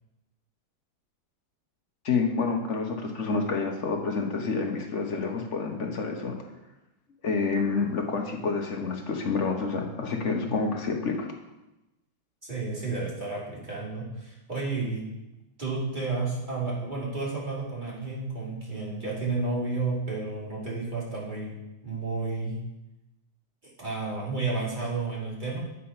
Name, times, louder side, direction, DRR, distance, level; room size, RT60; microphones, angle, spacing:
voice 1, 2.0-6.4 7.2-11.3, left 4 dB, 45° left, 2 dB, 1.1 m, -28 dB
voice 2, 12.4-15.0 15.6-21.5 21.8-22.6 23.8-25.6, right 3 dB, 25° right, -6 dB, 2.8 m, -31 dB
8.3 x 5.5 x 5.7 m, 0.96 s
omnidirectional pair, 2.0 m